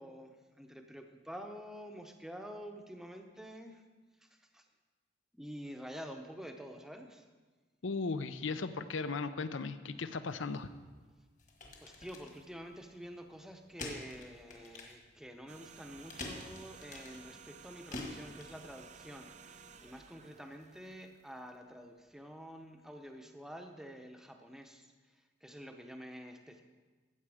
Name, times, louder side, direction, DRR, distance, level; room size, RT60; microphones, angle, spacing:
voice 1, 0.0-3.8 4.2-4.7 5.3-7.3 11.8-26.6, equal, ahead, 4 dB, 0.7 m, -48 dB
voice 2, 7.8-10.7, left 4 dB, 80° left, 12 dB, 0.7 m, -37 dB
sound 1, 10.3-19.0, left 2 dB, 40° left, 1.5 m, -48 dB
sound 2, 15.5-21.8 22.1-22.3, right 6 dB, 35° right, 0.5 m, -55 dB
14.5 x 7.8 x 4.9 m, 1.4 s
head